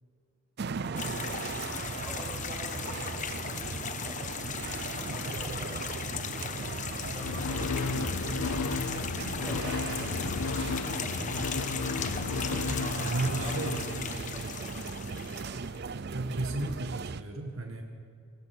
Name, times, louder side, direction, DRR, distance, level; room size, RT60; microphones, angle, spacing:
sound 1, 0.6-17.2, right 4 dB, 50° right, 0.5 m, -37 dB
sound 2, 1.0-15.8, left 6 dB, 35° left, 1.1 m, -38 dB
voice 1, 2.0-4.6 5.0-6.8 7.1-8.9 9.3-12.0 13.4-15.6, right 1 dB, 15° right, -4 dB, 6.8 m, -48 dB
sound 3, 7.1-14.6, left 4 dB, 80° left, 0.6 m, -34 dB
voice 2, 13.0-13.8 16.1-17.8, right 2 dB, 75° right, 3 dB, 1.8 m, -33 dB
24.0 x 19.5 x 6.1 m, 2.5 s
head